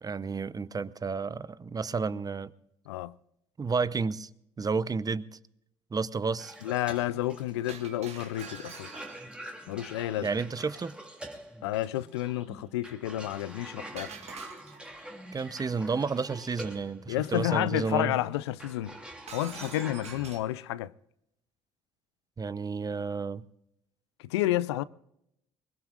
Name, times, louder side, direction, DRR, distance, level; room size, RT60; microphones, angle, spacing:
voice 1, 0.0-2.5 3.6-4.3 4.6-5.3 5.9-6.5 10.2-11.0 15.3-18.2 22.4-23.5, right 4 dB, 25° right, 0.8 m, -31 dB
Cough, 6.4-20.4, right 1 dB, 5° right, 2.6 m, -46 dB
voice 2, 6.6-8.9 9.7-10.3 11.6-14.2 17.1-18.9 19.3-20.9 24.3-24.8, left 15 dB, 85° left, 0.4 m, -30 dB
Shatter, 7.7-9.3 14.0-15.0 19.3-20.5, right 6 dB, 50° right, 1.9 m, -46 dB
23.5 x 20.5 x 2.5 m
hypercardioid pair, 55°, 14 cm